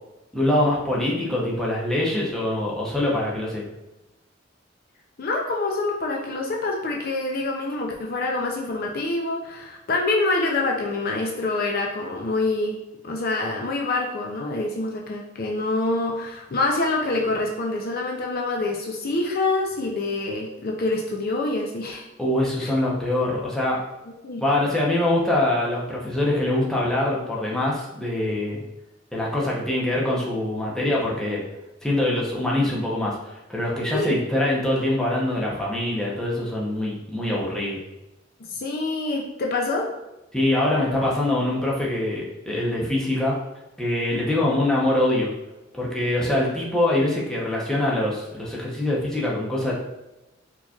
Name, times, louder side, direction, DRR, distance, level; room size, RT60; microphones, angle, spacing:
voice 1, 0.3-3.7 22.2-23.8 24.4-28.6 29.1-31.4 31.8-37.8 40.3-43.3 43.8-45.3 45.7-49.7, left 1 dB, 5° left, -5 dB, 0.8 m, -24 dB
voice 2, 5.2-12.8 13.0-22.1 22.6-22.7 24.2-24.4 33.9-34.2 38.4-39.9, left 2 dB, 50° left, 0 dB, 0.5 m, -26 dB
4.5 x 2.9 x 2.4 m, 0.98 s
head